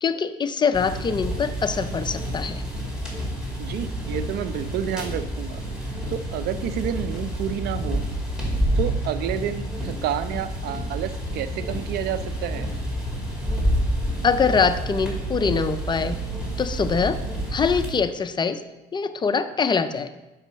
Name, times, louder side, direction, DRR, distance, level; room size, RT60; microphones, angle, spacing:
voice 1, 0.0-2.7 14.2-16.2 16.6-17.2 17.5-18.6 18.9-20.1, left 5 dB, 25° left, 11 dB, 0.4 m, -23 dB
sound 1, 0.7-17.9, right 1 dB, 5° right, 2.2 m, -29 dB
voice 2, 3.6-5.6 6.1-8.0 8.8-12.7, right 10 dB, 70° right, 12 dB, 0.5 m, -29 dB
6.2 x 5.4 x 5.0 m, 1.1 s
cardioid pair, 110°, 17 cm